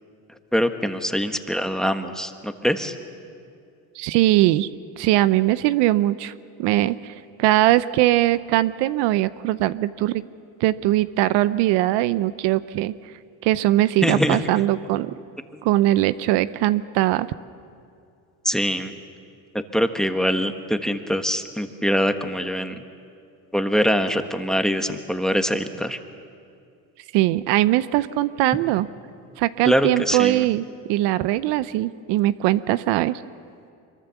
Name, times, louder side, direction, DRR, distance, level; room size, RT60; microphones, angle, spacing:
voice 1, 0.5-2.9 14.0-14.4 15.5-15.6 18.4-18.9 19.5-22.8 23.5-26.0 29.6-30.4, equal, ahead, 8 dB, 1.4 m, -23 dB
voice 2, 4.0-4.7 5.0-6.3 6.6-10.2 10.6-12.9 13.4-15.1 15.6-17.3 27.1-28.9 29.4-33.2, right 15 dB, 70° right, 16 dB, 0.7 m, -21 dB
24.5 x 22.5 x 7.0 m, 2.4 s
supercardioid pair, 85°, 43 cm